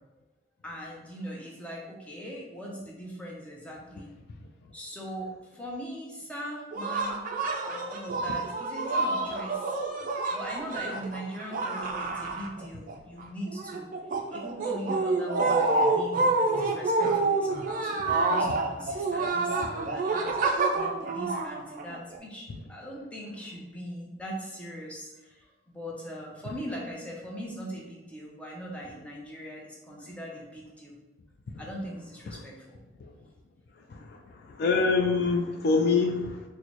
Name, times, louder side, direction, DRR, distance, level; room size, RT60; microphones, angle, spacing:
voice 1, 0.6-4.1 4.7-7.2 7.6-9.8 10.3-13.9 14.3-30.9 31.6-32.8 33.8-33.9, equal, 5° left, -3 dB, 0.6 m, -40 dB
sound 1, 6.7-12.9 13.2-22.2, right 3 dB, 45° right, 0.4 m, -28 dB
voice 2, 33.9-36.4, left 4 dB, 55° left, 3 dB, 0.3 m, -26 dB
4.1 x 2.1 x 2.9 m, 1.0 s
head